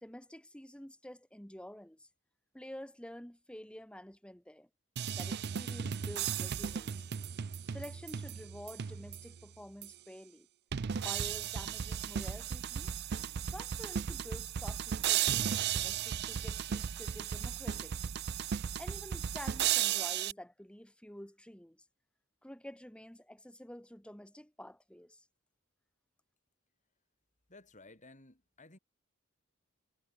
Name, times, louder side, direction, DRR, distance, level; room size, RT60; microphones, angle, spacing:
voice 1, 0.0-2.1 2.5-4.7 5.1-7.1 7.7-10.5 11.0-12.9 13.5-18.0 18.5-21.9 22.4-25.3, equal, 5° left, 1.6 m, -49 dB
sound 1, 5.0-9.4 9.8-9.9 10.7-20.3, right 9 dB, 55° right, 0.5 m, -35 dB
voice 2, 27.5-28.8, left 2 dB, 35° left, 4.8 m, -56 dB
head